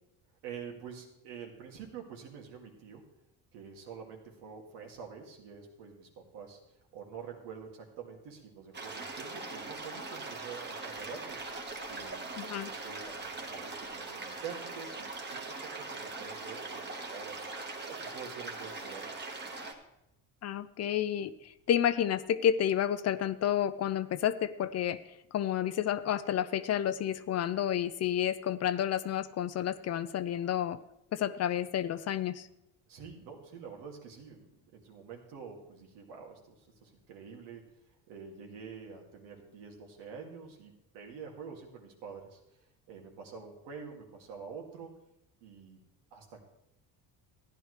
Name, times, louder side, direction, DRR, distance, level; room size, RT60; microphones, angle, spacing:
voice 1, 0.4-3.0 3.5-6.6 6.9-11.4 11.9-17.4 17.8-19.3 32.9-34.5 34.7-37.7 38.1-44.9 45.4-45.8 46.1-46.5, right 6 dB, 85° right, 1 dB, 2.3 m, -47 dB
sound 1, 8.7-19.7, right 3 dB, 25° right, 1.5 m, -41 dB
voice 2, 12.4-12.7 20.4-21.3 21.7-25.0 25.3-30.8 31.1-32.5, left 10 dB, 40° left, 14 dB, 0.5 m, -30 dB
14.0 x 10.5 x 3.3 m, 0.86 s
cardioid pair, 115°, 40 cm